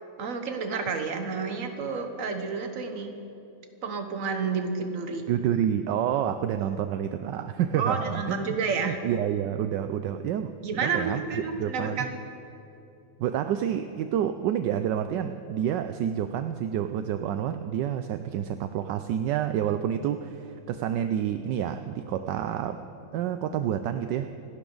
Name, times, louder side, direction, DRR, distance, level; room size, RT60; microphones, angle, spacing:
voice 1, 0.2-3.1 3.8-5.2 7.8-9.0 10.6-12.2, right 5 dB, 45° right, 6 dB, 1.5 m, -30 dB
voice 2, 5.3-8.5 8.8-10.5 10.8-11.2 11.6-12.1 13.2-22.8 23.1-24.3, right 9 dB, 75° right, 9 dB, 1.1 m, -28 dB
27.5 x 12.0 x 3.9 m, 2.9 s
omnidirectional pair, 2.2 m